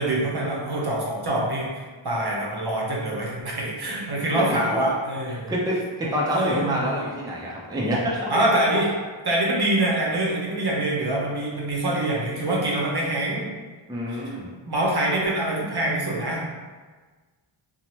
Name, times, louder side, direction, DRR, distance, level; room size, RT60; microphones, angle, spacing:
voice 1, 0.0-1.7 2.0-5.5 6.0-6.8 8.3-8.9 9.3-13.5 14.1-14.2 14.7-16.4, right 1 dB, 55° right, -4 dB, 0.7 m, -25 dB
voice 2, 5.3-8.3 8.8-8.9 13.9-14.5, equal, 10° right, -4 dB, 0.5 m, -27 dB
2.7 x 2.1 x 3.1 m, 1.4 s
wide cardioid pair, 50°, 48 cm